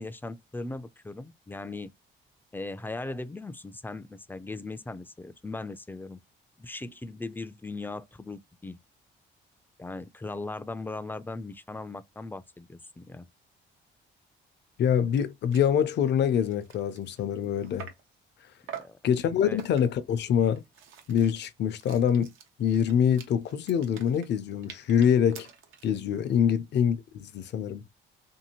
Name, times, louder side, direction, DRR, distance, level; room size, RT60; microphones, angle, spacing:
voice 1, 0.0-1.9 2.5-6.2 6.6-8.8 9.8-13.3 18.7-19.0 19.4-19.6 26.4-26.5, left 2 dB, 10° left, 0.3 m, -38 dB
voice 2, 14.8-17.9 19.0-20.6 21.1-22.3 22.6-25.5 25.8-27.8, left 8 dB, 60° left, 0.5 m, -25 dB
sound 1, 14.8-14.9 15.1-15.3 15.5-15.7 16.2-18.1 18.7-19.0 19.6-20.1 20.5-26.0, right 8 dB, 85° right, 0.7 m, -47 dB
2.7 x 2.5 x 2.8 m
cardioid pair, 90°, 20 cm